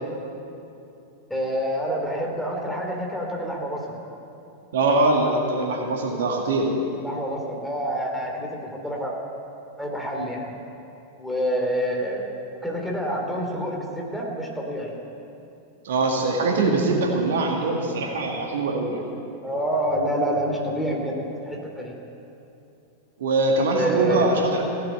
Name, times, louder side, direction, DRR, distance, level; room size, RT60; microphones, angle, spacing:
voice 1, 1.3-4.0 6.9-9.1 9.8-10.5 11.2-12.2 12.6-14.9 19.4-21.9 23.6-24.5, equal, 5° left, -1 dB, 2.8 m, -27 dB
voice 2, 4.7-6.7 15.8-19.0 23.2-24.6, right 2 dB, 60° right, 1 dB, 1.8 m, -22 dB
16.0 x 8.0 x 9.2 m, 2.8 s
figure-of-eight pair, 90°, 0 cm